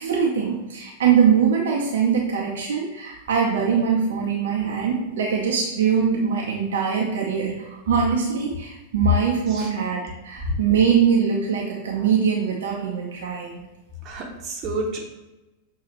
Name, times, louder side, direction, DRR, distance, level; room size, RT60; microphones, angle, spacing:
voice 1, 0.0-13.6, right 7 dB, 60° right, -2 dB, 0.7 m, -22 dB
voice 2, 14.0-15.0, right 2 dB, 35° right, 0 dB, 1.0 m, -30 dB
6.5 x 2.8 x 2.9 m, 1.0 s
figure-of-eight pair, 90°, 0 cm